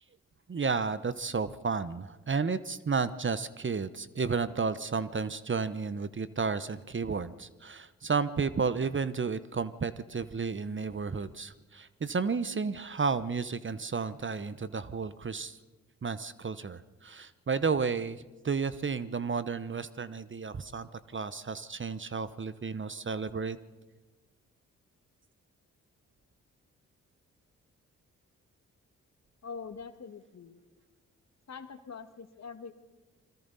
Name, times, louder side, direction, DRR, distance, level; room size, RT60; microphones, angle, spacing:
voice 1, 0.5-15.6 16.0-23.6, right 5 dB, 35° right, 15 dB, 1.0 m, -32 dB
voice 2, 29.4-30.6 31.5-32.7, left 5 dB, 50° left, 8 dB, 2.0 m, -44 dB
30.0 x 22.5 x 4.2 m, 1.2 s
hypercardioid pair, 40°, 34 cm